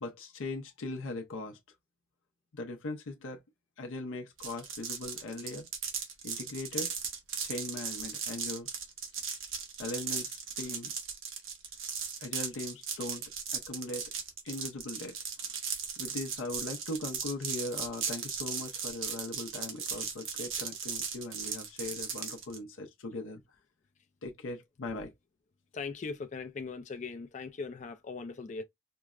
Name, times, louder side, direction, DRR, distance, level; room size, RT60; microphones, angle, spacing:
voice 1, 0.0-1.6 2.5-3.4 3.8-5.7 6.2-7.0 7.4-8.7 9.3-9.4 9.8-10.9 12.2-13.2 13.5-14.1 14.4-15.2 16.0-23.4 24.2-25.1, left 2 dB, 85° left, 0.6 m, -39 dB
sound 1, 4.4-22.6, right 6 dB, 80° right, 0.9 m, -37 dB
voice 2, 25.7-28.6, left 4 dB, 35° left, 0.3 m, -39 dB
4.5 x 2.0 x 2.4 m
head